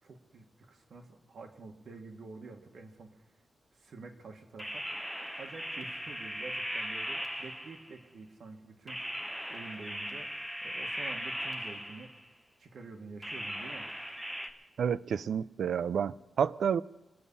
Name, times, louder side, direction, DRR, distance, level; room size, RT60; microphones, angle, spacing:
voice 1, 0.0-3.2 3.7-4.9 5.4-9.0 9.5-10.3 10.6-12.1 12.6-13.9, right 3 dB, 65° right, 1.7 m, -48 dB
sound 1, 4.6-8.0 8.9-12.3 13.2-14.5, equal, 5° right, 1.0 m, -38 dB
voice 2, 14.8-16.8, right 7 dB, 85° right, 0.4 m, -30 dB
25.0 x 8.6 x 5.5 m
wide cardioid pair, 155°, 0 cm